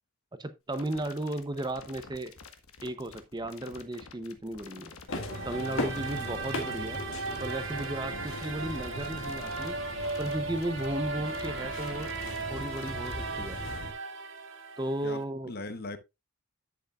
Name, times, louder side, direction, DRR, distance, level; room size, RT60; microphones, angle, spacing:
voice 1, 0.4-2.3 2.8-4.9 5.4-7.0 7.4-9.8 10.2-12.1 12.5-13.6 14.8-15.5, right 1 dB, 20° right, 0.6 m, -35 dB
sound 1, 0.7-13.1, left 5 dB, 85° left, 1.4 m, -50 dB
sound 2, 5.1-13.9, left 1 dB, 65° left, 2.0 m, -39 dB
sound 3, 5.3-15.2, right 3 dB, 60° right, 1.5 m, -37 dB
voice 2, 15.0-16.0, left 2 dB, 45° left, 1.0 m, -40 dB
10.5 x 8.2 x 2.4 m
head